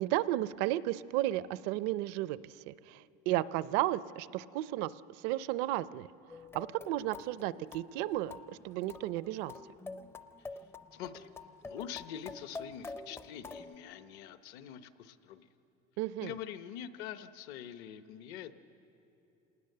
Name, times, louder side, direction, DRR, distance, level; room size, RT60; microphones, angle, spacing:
voice 1, 0.0-6.1 6.5-9.5 16.0-16.3, right 15 dB, 65° right, 17 dB, 0.5 m, -33 dB
sound 1, 6.3-13.7, left 3 dB, 15° left, 0.5 m, -47 dB
voice 2, 10.4-11.3 11.6-15.5 16.2-18.5, left 10 dB, 65° left, 11 dB, 0.9 m, -45 dB
27.0 x 19.5 x 6.7 m, 2.9 s
cardioid pair, 170°, 18 cm